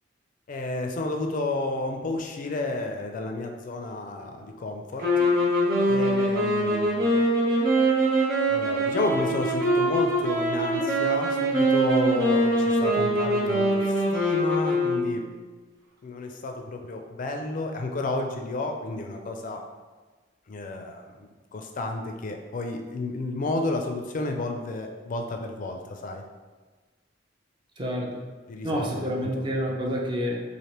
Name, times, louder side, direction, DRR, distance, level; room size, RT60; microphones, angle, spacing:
voice 1, 0.5-5.3 5.9-7.2 8.5-13.8 14.1-15.3 16.0-19.6 20.5-26.2 28.5-29.3, left 2 dB, 45° left, 3 dB, 0.4 m, -31 dB
sound 1, 5.0-15.4, right 1 dB, 60° right, 1.1 m, -23 dB
voice 2, 27.8-28.2 28.6-30.4, equal, 25° right, -2 dB, 0.4 m, -28 dB
3.2 x 2.5 x 2.9 m, 1.3 s
head